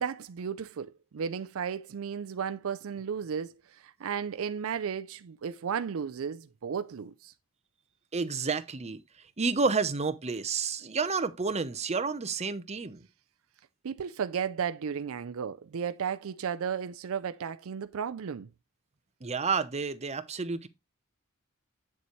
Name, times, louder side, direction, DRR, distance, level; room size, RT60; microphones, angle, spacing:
voice 1, 0.0-7.3 13.8-18.5, right 7 dB, 70° right, 0.4 m, -34 dB
voice 2, 8.1-9.0 9.4-13.0 19.2-20.7, right 4 dB, 30° right, 0.8 m, -30 dB
8.5 x 6.9 x 3.1 m
head